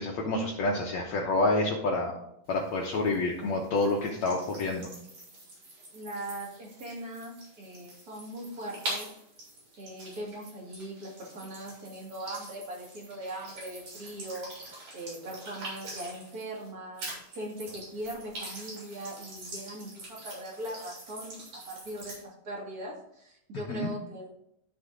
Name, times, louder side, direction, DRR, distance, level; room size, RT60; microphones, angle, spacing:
voice 1, 0.0-2.2 2.5-4.9 23.7-23.9, left 2 dB, 65° left, -1 dB, 1.9 m, -28 dB
sound 1, 2.5-16.7 17.0-22.2, right 1 dB, 50° right, 4.7 m, -44 dB
voice 2, 5.9-9.1 9.8-14.5 14.9-24.3, right 1 dB, 30° right, -4 dB, 2.2 m, -40 dB
13.0 x 4.4 x 3.7 m, 0.75 s
omnidirectional pair, 3.9 m